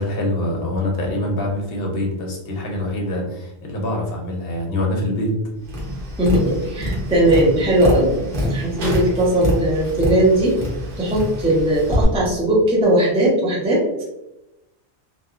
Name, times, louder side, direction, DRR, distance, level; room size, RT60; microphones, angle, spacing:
voice 1, 0.0-5.3, left 1 dB, 65° left, 0 dB, 0.8 m, -24 dB
Tap, 5.7-12.0, equal, 55° right, 0.9 m, -25 dB
voice 2, 6.2-10.5 11.0-13.8, right 1 dB, 10° right, -5 dB, 0.4 m, -18 dB
2.8 x 2.2 x 2.4 m, 0.92 s
omnidirectional pair, 1.1 m